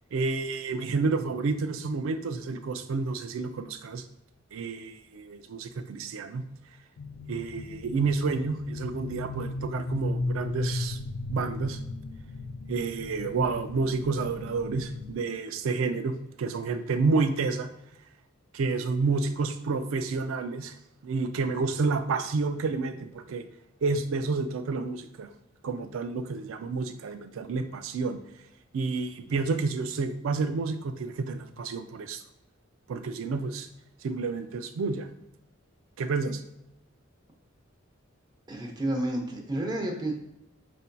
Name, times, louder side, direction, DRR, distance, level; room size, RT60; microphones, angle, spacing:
voice 1, 0.1-4.0 4.5-6.4 7.3-11.0 11.3-11.8 12.7-17.7 18.5-20.8 21.0-23.4 23.8-25.3 25.6-28.2 28.7-32.2 32.9-33.7 34.0-35.1 36.0-36.4, right 4 dB, 75° right, 9 dB, 0.4 m, -29 dB
sound 1, 7.0-15.1, left 2 dB, 85° left, 0.4 m, -36 dB
voice 2, 38.5-40.1, right 1 dB, 20° right, 2 dB, 0.6 m, -30 dB
5.5 x 2.6 x 2.2 m, 0.83 s
head